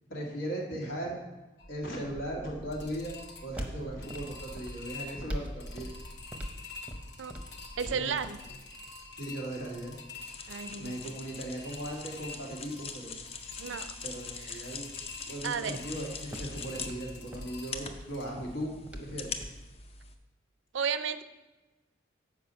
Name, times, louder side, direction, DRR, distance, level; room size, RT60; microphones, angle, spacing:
voice 1, 0.1-1.2 1.7-5.9 7.8-8.1 9.2-10.0 10.7-13.1 14.0-14.9 15.3-19.5, right 1 dB, 85° left, -2 dB, 2.0 m, -38 dB
sound 1, 1.6-18.3, left 3 dB, 60° left, 0.9 m, -47 dB
sound 2, 2.6-19.7, equal, 5° right, 0.7 m, -46 dB
voice 2, 7.8-8.4 10.5-11.0 13.6-14.0 15.4-15.8 20.7-21.2, right 6 dB, 80° right, 12 dB, 0.4 m, -33 dB
sound 3, 10.2-20.2, left 5 dB, 30° left, 0.5 m, -43 dB
7.5 x 4.8 x 5.5 m, 1.1 s
head